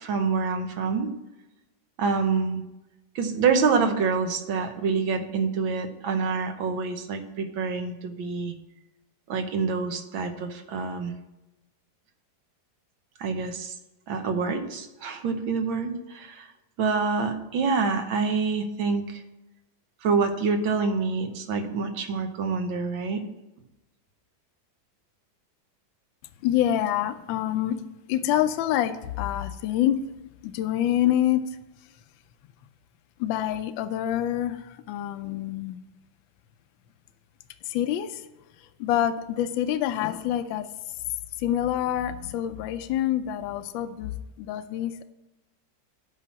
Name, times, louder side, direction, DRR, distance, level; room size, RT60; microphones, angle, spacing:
voice 1, 0.0-1.1 2.0-2.6 3.2-8.5 9.3-11.1 13.2-13.8 14.1-16.5 16.8-19.2 20.0-23.2, right 5 dB, 85° right, 1.8 m, -26 dB
voice 2, 26.4-27.8 28.1-30.0 30.4-31.6 33.2-35.8 37.6-38.3 38.8-40.7 41.4-45.0, left 11 dB, 80° left, 1.3 m, -26 dB
8.5 x 5.7 x 7.4 m
omnidirectional pair, 2.1 m